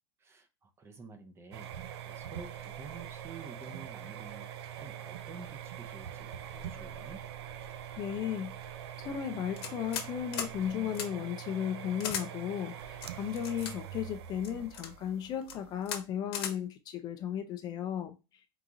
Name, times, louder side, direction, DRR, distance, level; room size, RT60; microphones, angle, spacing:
voice 1, 0.2-1.7 2.1-4.5 4.8-7.2, right 4 dB, 20° right, 0.6 m, -49 dB
sound 1, 1.5-16.0, right 10 dB, 85° right, 0.5 m, -44 dB
voice 2, 8.0-8.6 9.0-18.1, left 9 dB, 30° left, 0.4 m, -35 dB
sound 2, 9.6-10.1 10.3-10.5 10.9-11.1 12.0-12.3 13.0-13.7 14.4-14.9 15.4-15.6 15.9-16.0 16.3-16.5, left 8 dB, 70° left, 1.0 m, -36 dB
3.7 x 2.9 x 3.7 m
supercardioid pair, 150°, 13 cm